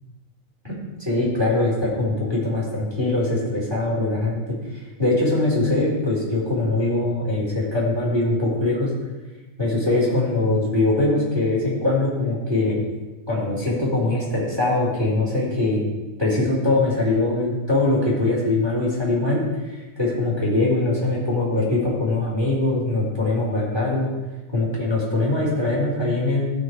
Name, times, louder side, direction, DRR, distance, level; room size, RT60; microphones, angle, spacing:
voice 1, 0.6-4.6 5.0-8.9 9.6-12.8 13.3-15.8 16.2-19.4 20.0-24.1 24.5-26.5, left 2 dB, 5° right, -6 dB, 4.0 m, -22 dB
17.0 x 6.4 x 4.9 m, 1.2 s
omnidirectional pair, 3.6 m